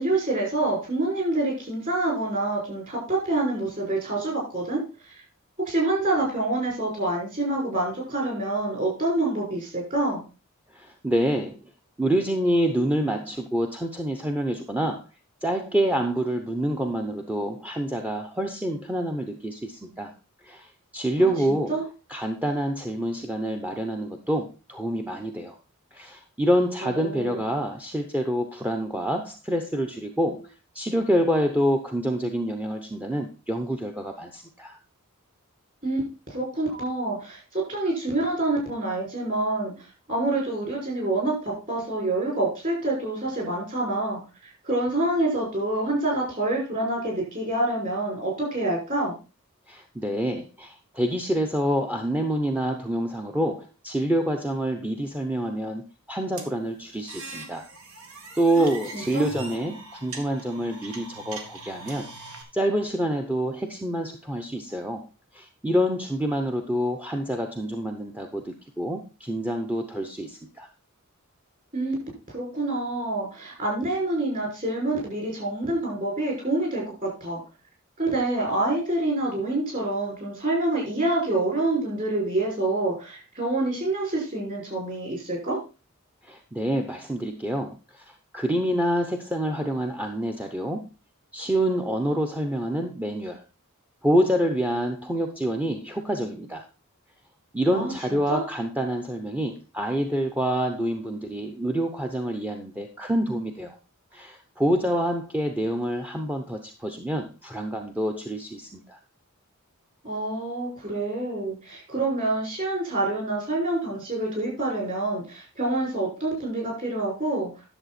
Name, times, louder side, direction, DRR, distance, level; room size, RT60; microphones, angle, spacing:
voice 1, 0.0-5.2 5.6-10.2 21.2-21.3 21.7-21.8 26.8-27.4 35.8-36.0 36.3-39.7 40.1-44.2 44.6-49.2 58.6-58.7 58.9-59.3 71.7-72.0 72.3-77.4 78.0-85.6 97.7-98.4 110.0-117.5, right 2 dB, 40° right, -2 dB, 5.9 m, -27 dB
voice 2, 10.7-11.6 12.0-15.0 15.4-20.1 20.4-21.7 22.1-25.6 25.9-30.5 30.7-34.8 49.7-57.7 58.4-62.1 62.5-65.1 65.3-70.7 86.2-90.9 91.3-93.4 94.0-96.6 97.5-103.8 104.1-109.0, equal, 5° right, 4 dB, 0.8 m, -27 dB
sound 1, 56.4-62.4, right 3 dB, 70° right, 2.0 m, -41 dB
11.0 x 7.1 x 4.2 m, 0.32 s
head